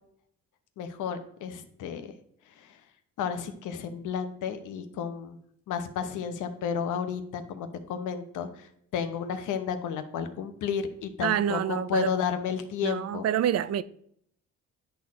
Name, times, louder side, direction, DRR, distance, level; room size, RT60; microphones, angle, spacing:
voice 1, 0.8-2.1 2.6-2.7 3.2-5.4 5.7-8.7 8.9-13.2, left 7 dB, 85° left, 1.0 m, -32 dB
voice 2, 11.2-12.1 12.8-13.8, right 10 dB, 55° right, 0.5 m, -27 dB
10.5 x 4.3 x 4.2 m
cardioid pair, 90°, 30 cm